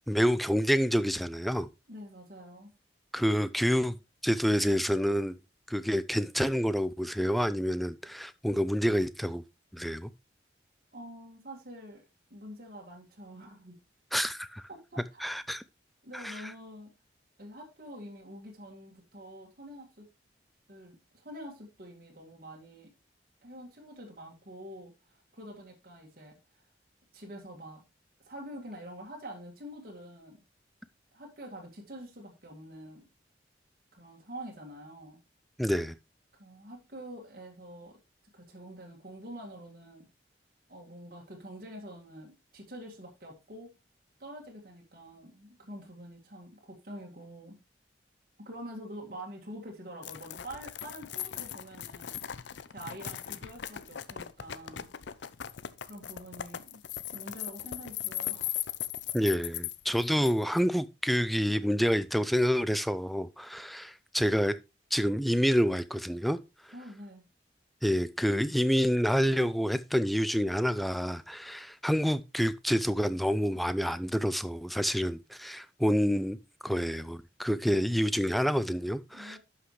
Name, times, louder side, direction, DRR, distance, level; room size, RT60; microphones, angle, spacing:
voice 1, 0.1-1.7 3.1-4.0 4.2-5.3 5.7-9.4 9.7-10.1 14.1-14.6 15.2-15.6 16.1-16.5 35.6-35.9 59.1-64.5 64.9-66.4 67.8-76.4 76.6-79.4, equal, ahead, 0.4 m, -28 dB
voice 2, 1.9-2.7 10.9-12.0 12.3-13.8 14.7-15.3 16.0-16.9 17.4-20.1 20.7-22.9 23.4-26.4 27.1-27.8 28.3-30.4 31.1-33.1 33.9-35.2 36.3-38.0 38.3-40.1 40.7-43.8 44.2-47.6 48.4-54.9 55.8-56.8 57.1-58.6 66.7-67.2 77.7-78.1 79.1-79.4, equal, 50° right, 2.0 m, -46 dB
sound 1, 50.0-60.6, left 11 dB, 75° left, 0.5 m, -38 dB
11.5 x 5.8 x 3.1 m
head